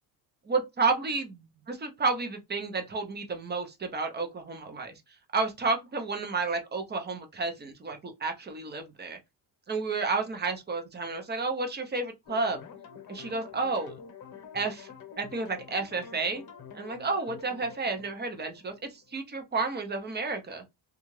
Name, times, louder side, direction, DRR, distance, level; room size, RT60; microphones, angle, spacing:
voice 1, 0.5-5.0 5.3-9.2 9.7-12.6 13.1-14.0 14.5-14.9 15.2-16.4 16.7-20.6, right 4 dB, 25° right, 0.5 m, -31 dB
sound 1, 12.3-19.3, left 7 dB, 50° left, 0.9 m, -48 dB
2.7 x 2.3 x 3.0 m
cardioid pair, 155°, 46 cm